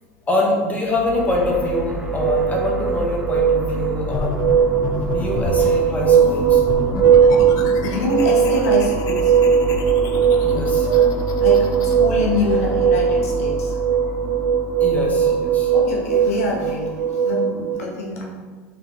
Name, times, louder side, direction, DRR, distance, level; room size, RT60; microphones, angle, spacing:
voice 1, 0.3-4.5 5.0-6.6 10.2-10.9 14.8-15.7, left 2 dB, 20° left, -2 dB, 1.1 m, -24 dB
sound 1, 0.9-17.0, left 1 dB, 10° right, 0.7 m, -31 dB
sound 2, 1.3-17.7, right 7 dB, 55° right, 1.2 m, -19 dB
sound 3, 4.1-5.7 6.4-12.0, left 3 dB, 50° left, 0.5 m, -30 dB
voice 2, 7.8-9.4 9.9-10.6 10.8-13.8 15.7-18.2, left 3 dB, 85° left, -2 dB, 0.8 m, -26 dB
3.8 x 3.6 x 2.9 m, 1.4 s
hypercardioid pair, 95°, 8 cm